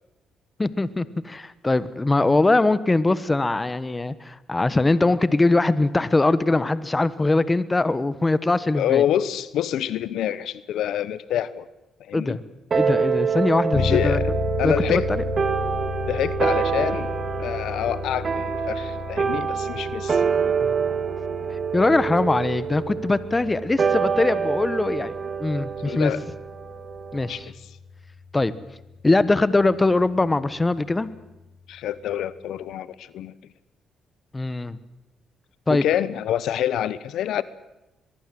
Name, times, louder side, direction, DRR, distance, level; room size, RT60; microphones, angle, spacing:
voice 1, 0.6-9.0 12.1-12.4 12.7-14.2 14.6-15.2 21.7-25.1 25.4-26.1 27.1-27.5 28.3-28.5 29.0-31.1 34.3-34.8 35.7-35.8, left 2 dB, 20° left, 16 dB, 1.2 m, -21 dB
voice 2, 8.7-11.6 12.1-12.4 13.7-14.3 14.6-15.1 16.1-17.1 17.4-20.2 25.9-26.2 27.3-27.4 31.7-33.3 35.7-37.4, left 11 dB, 80° left, 17 dB, 0.9 m, -26 dB
sound 1, 12.7-27.4, right 6 dB, 45° right, 2.2 m, -26 dB
sound 2, 13.7-30.5, left 5 dB, 60° left, 7.4 m, -34 dB
23.0 x 22.0 x 7.7 m, 0.97 s
cardioid pair, 90°, 0 cm